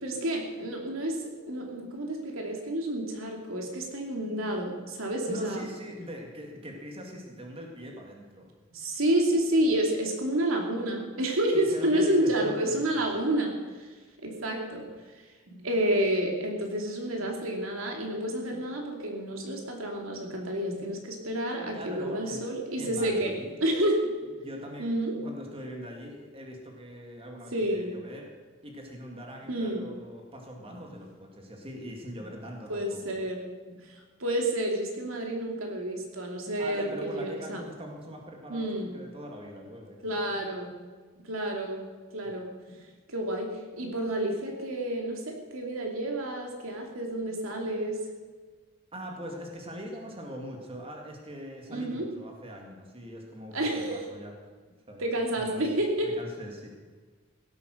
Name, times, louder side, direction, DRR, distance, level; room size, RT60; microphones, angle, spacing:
voice 1, 0.0-5.6 8.7-13.9 14.2-14.9 15.5-23.3 23.6-24.2 24.8-25.1 27.5-28.0 29.5-29.9 30.7-30.8 32.7-37.6 38.5-39.0 40.0-40.7 41.2-42.8 43.1-48.1 51.7-52.1 53.5-54.0 55.0-56.1, right 1 dB, 85° right, 1 dB, 2.8 m, -30 dB
voice 2, 5.3-8.5 11.5-13.1 21.7-22.5 22.8-23.6 24.4-25.0 25.2-28.3 28.6-33.2 36.6-40.2 48.9-54.4 54.9-55.1 55.3-55.9 56.2-56.8, equal, 30° right, 1 dB, 2.2 m, -42 dB
17.0 x 8.8 x 6.5 m, 1.4 s
head